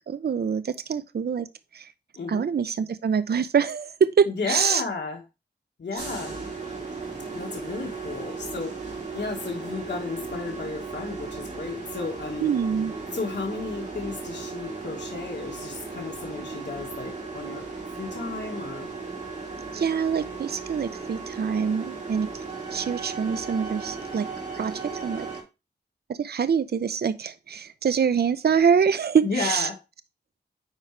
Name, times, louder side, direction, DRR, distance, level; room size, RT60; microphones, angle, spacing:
voice 1, 0.1-1.5 1.7-1.9 2.3-4.8 5.9-6.1 12.4-12.9 19.7-22.4 22.7-24.3 24.5-25.3 26.1-29.7, right 6 dB, 65° right, 0.5 m, -25 dB
voice 2, 4.3-5.2 5.8-6.4 7.3-8.9 9.1-12.5 13.1-17.7 18.0-18.9 29.2-29.7, left 4 dB, 85° left, 1.6 m, -33 dB
sound 1, 6.0-25.4, right 4 dB, 45° right, 3.2 m, -36 dB
9.0 x 4.9 x 3.2 m
wide cardioid pair, 65°, 18 cm